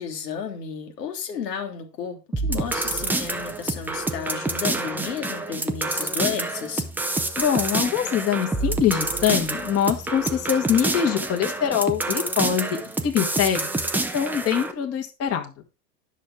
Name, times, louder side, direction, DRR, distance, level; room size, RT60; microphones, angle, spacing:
voice 1, 0.0-6.9, left 7 dB, 75° left, 1.9 m, -32 dB
sound 1, 2.3-14.7, right 2 dB, 5° right, 0.5 m, -27 dB
voice 2, 7.4-15.5, left 9 dB, 30° left, 1.6 m, -24 dB
10.0 x 6.5 x 3.7 m
hypercardioid pair, 100°, 49 cm